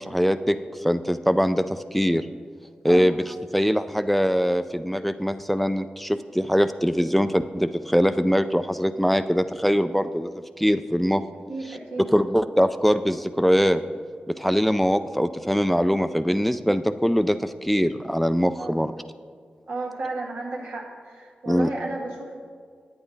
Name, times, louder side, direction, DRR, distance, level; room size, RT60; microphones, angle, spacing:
voice 1, 0.0-2.3 2.8-11.2 11.7-13.8 14.3-18.9 21.5-21.7, equal, 5° left, 10 dB, 0.4 m, -22 dB
voice 2, 11.5-12.1 18.6-18.8 19.7-22.4, right 2 dB, 85° right, -3 dB, 1.6 m, -33 dB
8.6 x 8.2 x 3.9 m, 2.1 s
cardioid pair, 45°, 3 cm